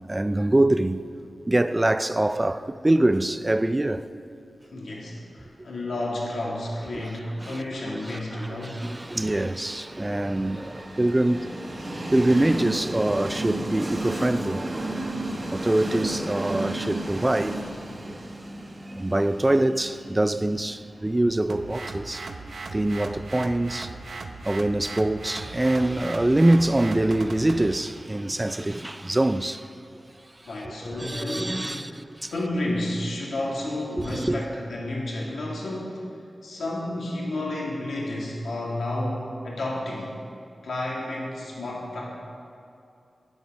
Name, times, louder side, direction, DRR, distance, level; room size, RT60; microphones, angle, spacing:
voice 1, 0.1-1.1 1.5-4.1 7.4-7.6 8.0-11.6 12.1-14.7 15.5-17.6 18.0-18.1 18.9-22.4 22.7-23.9 24.4-29.7 30.8-32.3 34.0-34.4, right 1 dB, 15° right, 0.4 m, -24 dB
voice 2, 4.7-8.8 30.5-32.0 32.3-36.0 36.4-40.1 40.6-42.1, left 1 dB, 90° left, 1.9 m, -31 dB
Train, 8.3-24.1, right 1 dB, 35° right, 1.5 m, -34 dB
sound 1, 21.5-27.7, right 3 dB, 70° right, 0.7 m, -38 dB
11.0 x 9.6 x 5.2 m
wide cardioid pair, 125°, 0 cm